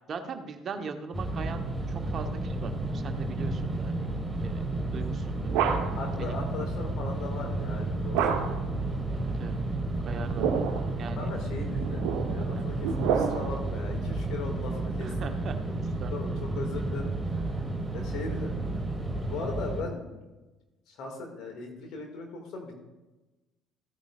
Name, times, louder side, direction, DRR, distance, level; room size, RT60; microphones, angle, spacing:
voice 1, 0.1-4.1 4.4-4.6 4.9-5.6 6.2-6.3 9.1-9.6 10.0-10.5 11.0-11.3 12.5-12.6 15.0-16.4, right 5 dB, 50° right, 6 dB, 1.1 m, -40 dB
sound 1, 1.1-19.8, right 2 dB, 15° right, 1.8 m, -32 dB
sound 2, 5.0-6.2 8.1-8.8 10.1-10.9 11.7-13.7, right 7 dB, 70° right, 1.0 m, -29 dB
voice 2, 5.9-8.5 11.2-15.3 16.1-17.7 17.9-18.6 19.3-20.2 20.9-22.8, left 4 dB, 60° left, 2 dB, 2.2 m, -39 dB
14.5 x 9.3 x 2.5 m, 1.1 s
hypercardioid pair, 55°, 0 cm